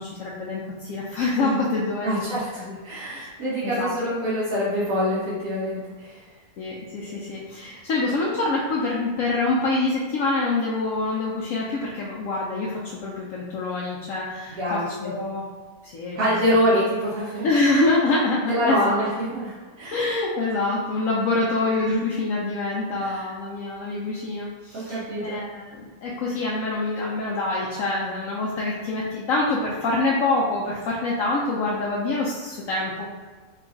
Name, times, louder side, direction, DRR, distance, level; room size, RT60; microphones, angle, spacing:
voice 1, 0.0-2.3 2.6-2.8 3.1-3.3 3.6-3.9 6.6-15.4 15.8-16.2 16.5-16.6 17.4-19.0 19.9-33.1, left 2 dB, 70° left, -4 dB, 0.9 m, -26 dB
voice 2, 2.0-6.2 7.1-7.2 14.5-15.1 16.1-17.5 18.5-20.1 21.8-22.0 23.0-23.2 24.7-25.4, equal, 75° right, -10 dB, 1.4 m, -25 dB
3.8 x 2.4 x 3.6 m, 1.4 s
omnidirectional pair, 1.6 m